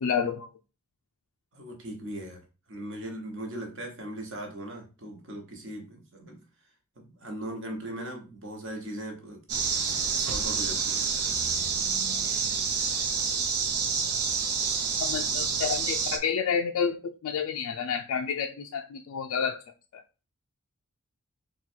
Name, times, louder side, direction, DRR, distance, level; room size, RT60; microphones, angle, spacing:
voice 1, 0.0-0.5 15.0-19.6 19.9-20.0, left 6 dB, 75° left, 3 dB, 0.4 m, -29 dB
voice 2, 1.5-2.4 2.7-6.4 7.0-11.0, right 1 dB, 55° right, 2 dB, 1.1 m, -39 dB
sound 1, 9.5-16.2, right 5 dB, 85° right, 0.7 m, -28 dB
3.8 x 2.3 x 4.4 m, 0.33 s
head